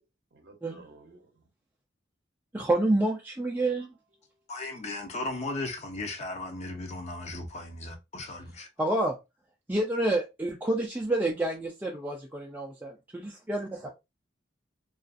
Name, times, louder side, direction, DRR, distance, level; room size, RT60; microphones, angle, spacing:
voice 1, 0.3-1.5 3.8-3.9 4.2-4.3 13.8-13.9, right 3 dB, 60° right, 0.7 m, -53 dB
voice 2, 2.5-3.9 8.8-9.2 9.7-13.9, right 1 dB, 10° right, 0.4 m, -28 dB
voice 3, 4.5-8.7, left 2 dB, 35° left, 0.5 m, -36 dB
2.4 x 2.4 x 2.3 m
head